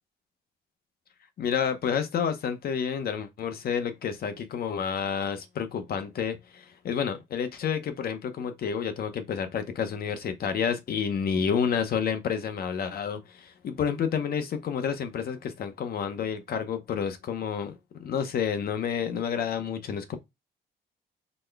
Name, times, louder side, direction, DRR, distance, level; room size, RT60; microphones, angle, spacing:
voice 1, 1.4-20.2, left 7 dB, 60° left, 0.7 m, -30 dB
4.1 x 2.1 x 3.3 m
cardioid pair, 145°, 18 cm